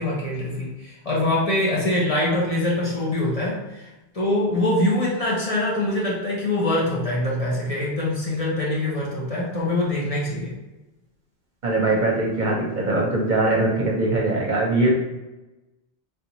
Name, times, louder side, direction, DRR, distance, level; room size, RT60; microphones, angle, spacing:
voice 1, 0.0-3.9 4.1-10.5, left 1 dB, 40° left, -5 dB, 0.8 m, -24 dB
voice 2, 11.6-14.9, right 2 dB, 50° right, -3 dB, 0.8 m, -21 dB
3.5 x 2.6 x 2.9 m, 1.0 s
omnidirectional pair, 1.0 m